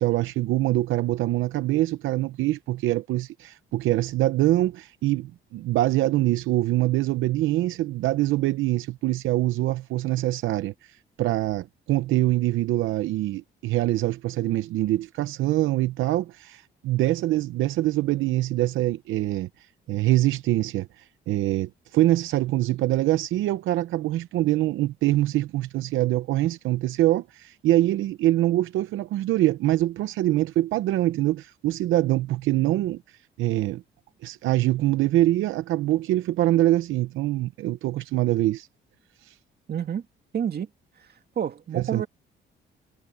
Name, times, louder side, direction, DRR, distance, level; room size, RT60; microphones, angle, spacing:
voice 1, 0.0-33.8 34.2-38.7 39.2-39.4 41.7-42.0, right 15 dB, 85° right, 0.7 m, -24 dB
voice 2, 39.7-40.0 40.3-40.7 41.0-41.1 41.4-42.1, right 8 dB, 55° right, 2.2 m, -28 dB
cardioid pair, 90°, 20 cm